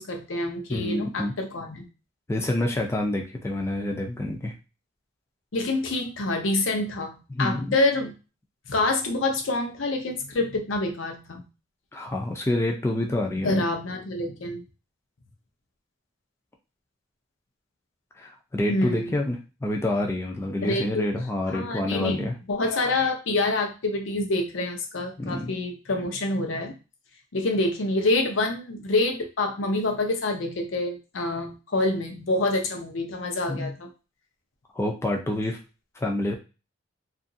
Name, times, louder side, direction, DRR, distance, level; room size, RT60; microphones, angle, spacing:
voice 1, 0.0-1.8 5.5-8.1 8.7-11.4 13.4-14.6 18.7-19.1 20.6-21.1 21.5-26.8 27.3-33.9, left 2 dB, 80° left, 4 dB, 0.7 m, -27 dB
voice 2, 0.7-1.3 2.3-4.5 7.3-7.7 11.9-13.6 18.2-22.3 25.2-25.5 33.5-33.7 34.7-35.6 36.0-36.3, left 1 dB, 15° left, 1 dB, 0.4 m, -27 dB
2.8 x 2.5 x 2.6 m, 0.31 s
head